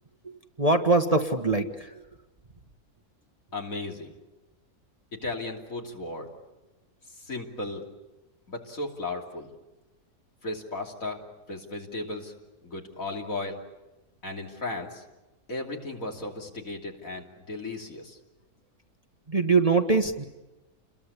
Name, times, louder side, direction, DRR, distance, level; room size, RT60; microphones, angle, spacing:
voice 1, 0.2-2.0 19.3-20.2, right 3 dB, 25° right, 5 dB, 1.3 m, -23 dB
voice 2, 3.5-4.1 5.2-6.3 7.2-7.9 8.5-9.5 10.4-11.2 11.5-12.3 12.6-13.6 14.2-15.0 15.5-18.2, left 2 dB, 60° left, 1 dB, 3.5 m, -35 dB
29.0 x 22.0 x 8.3 m, 1.1 s
omnidirectional pair, 1.6 m